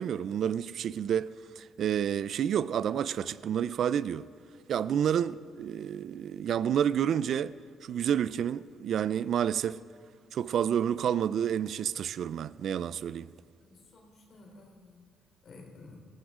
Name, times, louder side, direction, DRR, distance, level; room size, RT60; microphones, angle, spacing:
voice 1, 0.0-4.3 4.7-7.5 7.8-9.8 10.3-13.3, right 9 dB, 65° right, 0.4 m, -29 dB
voice 2, 13.6-15.0 15.4-16.0, left 3 dB, 55° left, 3.4 m, -53 dB
18.0 x 15.5 x 3.7 m
cardioid pair, 90°, 0 cm